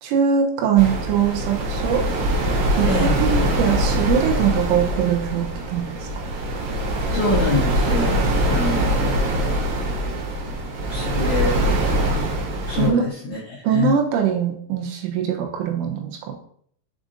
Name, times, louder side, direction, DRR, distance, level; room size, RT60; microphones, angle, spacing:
voice 1, 0.0-2.0 2.8-2.9 3.2-5.9 12.7-13.1 13.6-16.1, right 8 dB, 85° right, 1 dB, 3.4 m, -21 dB
sound 1, 0.8-12.9, right 1 dB, 70° right, 2.9 m, -23 dB
voice 2, 2.8-3.2 7.1-9.7 10.9-12.2 12.7-13.9, left 3 dB, 90° left, -7 dB, 1.6 m, -26 dB
7.1 x 5.0 x 2.6 m, 0.64 s
omnidirectional pair, 5.5 m